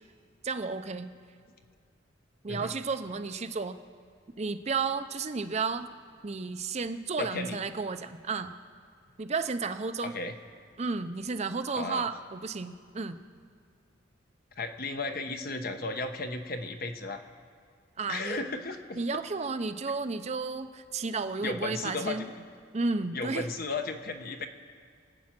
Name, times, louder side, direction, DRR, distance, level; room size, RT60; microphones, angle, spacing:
voice 1, 0.4-1.1 2.4-3.8 4.4-5.9 6.2-8.5 9.2-10.1 10.8-13.2 18.0-18.4 19.0-22.3 22.7-23.5, right 4 dB, 35° right, 10 dB, 0.6 m, -32 dB
voice 2, 7.2-7.6 10.0-10.3 11.7-12.0 14.6-17.2 18.1-19.2 21.4-22.4 23.1-24.5, left 3 dB, 50° left, 6 dB, 1.0 m, -35 dB
22.5 x 8.6 x 6.0 m, 2.2 s
head